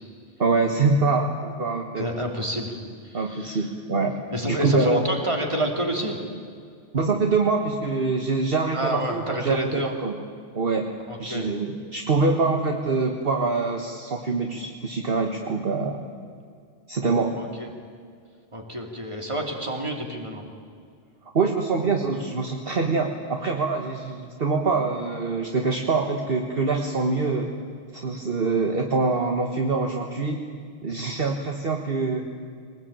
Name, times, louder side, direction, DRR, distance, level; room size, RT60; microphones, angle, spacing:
voice 1, 0.4-2.1 3.1-5.0 6.9-10.2 10.6-10.9 11.2-16.1 16.9-17.4 21.3-27.5 27.9-30.4 30.8-32.2, right 3 dB, 50° right, 3 dB, 1.6 m, -24 dB
voice 2, 2.0-2.8 3.0-3.7 4.3-6.2 8.7-9.9 11.1-11.5 17.3-17.7 18.5-20.4, equal, 25° right, 1 dB, 3.3 m, -29 dB
23.5 x 19.5 x 8.9 m, 2.2 s
omnidirectional pair, 1.3 m